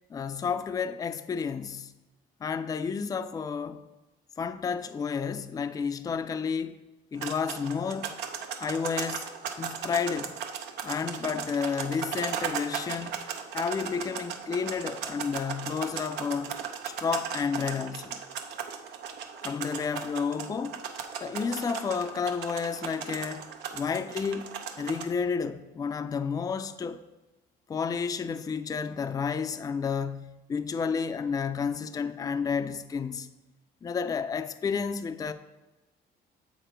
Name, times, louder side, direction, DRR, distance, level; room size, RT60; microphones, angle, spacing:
voice 1, 0.1-1.9 2.4-3.8 4.4-6.8 7.1-8.1 8.6-10.3 10.8-13.2 13.5-16.5 16.8-18.2 19.4-20.8 21.2-24.5 24.8-27.0 27.7-33.3 33.8-35.3, left 6 dB, 20° left, 0.3 m, -31 dB
sound 1, 7.2-25.1, right 7 dB, 85° right, 0.7 m, -37 dB
7.1 x 5.0 x 4.4 m
cardioid pair, 110°, 17 cm